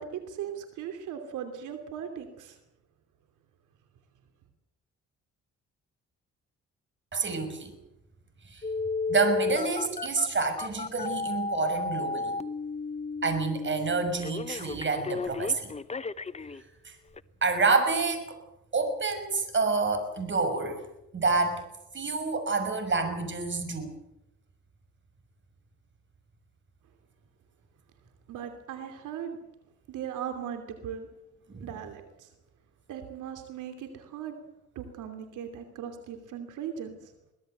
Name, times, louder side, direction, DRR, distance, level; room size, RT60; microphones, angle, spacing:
voice 1, 0.0-2.6 28.3-29.4 29.9-31.1 31.6-32.3 32.9-34.4 34.7-37.1, right 8 dB, 85° right, 6 dB, 2.9 m, -38 dB
voice 2, 7.1-7.7 8.5-8.6 9.1-12.4 13.2-15.7 16.8-16.9 17.4-18.3 18.7-20.8 21.1-21.6 21.9-23.9 31.5-31.7, right 4 dB, 40° right, 8 dB, 6.1 m, -28 dB
Telephone, 8.6-16.6 17.2-17.3, left 4 dB, 20° left, 0.9 m, -33 dB
24.0 x 17.5 x 8.0 m, 0.91 s
cardioid pair, 90°, 30 cm